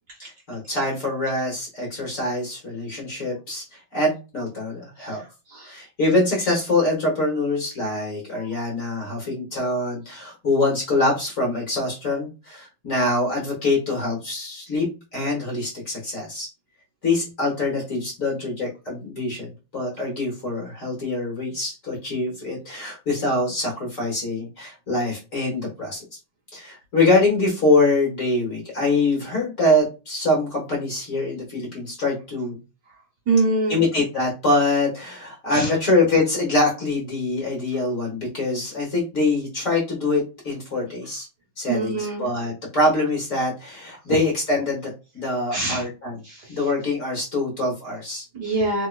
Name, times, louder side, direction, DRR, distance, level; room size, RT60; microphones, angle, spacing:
voice 1, 0.2-3.6 3.9-5.2 5.6-16.5 17.0-19.5 19.7-26.0 26.5-32.6 33.7-41.3 41.6-46.1 46.5-48.2, left 2 dB, 45° left, -2 dB, 1.3 m, -24 dB
voice 2, 5.0-5.7 8.3-8.6 33.3-33.8 35.5-35.7 41.7-42.3 45.5-45.9 46.2-46.6 48.3-48.9, right 3 dB, 60° right, -2 dB, 1.2 m, -25 dB
3.6 x 2.9 x 2.2 m, 0.30 s
omnidirectional pair, 2.4 m